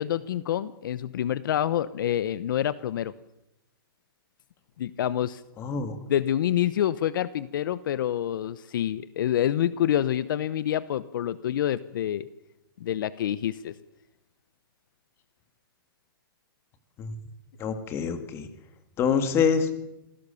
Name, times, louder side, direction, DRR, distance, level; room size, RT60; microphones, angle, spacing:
voice 1, 0.0-3.1 4.8-5.4 6.1-12.3 12.8-13.7, left 11 dB, 60° left, 16 dB, 0.9 m, -27 dB
voice 2, 5.6-6.0 17.0-17.1 17.6-18.5 19.0-19.7, left 6 dB, 20° left, 9 dB, 2.0 m, -25 dB
27.0 x 17.0 x 7.0 m, 0.90 s
hypercardioid pair, 160°, 13 cm